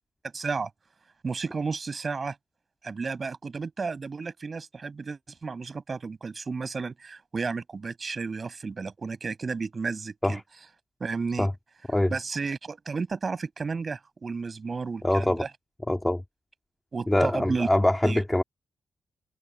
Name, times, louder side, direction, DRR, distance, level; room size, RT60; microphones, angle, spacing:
voice 1, 0.3-0.7 1.2-2.4 2.8-10.4 11.0-11.5 12.1-15.5 16.9-17.7 18.0-18.2, right 4 dB, 40° right, 6.3 m, -32 dB
voice 2, 15.0-15.4 15.9-16.2 17.1-18.4, left 1 dB, 10° left, 2.5 m, -23 dB
cardioid pair, 105°, 0 cm